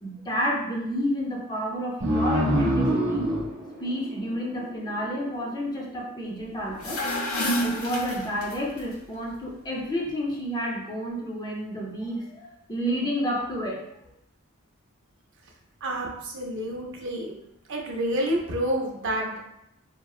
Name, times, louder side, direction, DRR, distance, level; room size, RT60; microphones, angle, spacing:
voice 1, 0.0-3.3 3.8-7.0 7.6-13.8, equal, 20° left, -2 dB, 0.5 m, -30 dB
sound 1, 2.0-5.2, equal, 35° right, 0.8 m, -25 dB
sound 2, 6.7-8.8, equal, 85° left, 0.6 m, -29 dB
voice 2, 15.8-17.3 17.7-19.4, right 1 dB, 60° right, 0 dB, 0.6 m, -29 dB
3.7 x 2.0 x 2.3 m, 0.85 s
head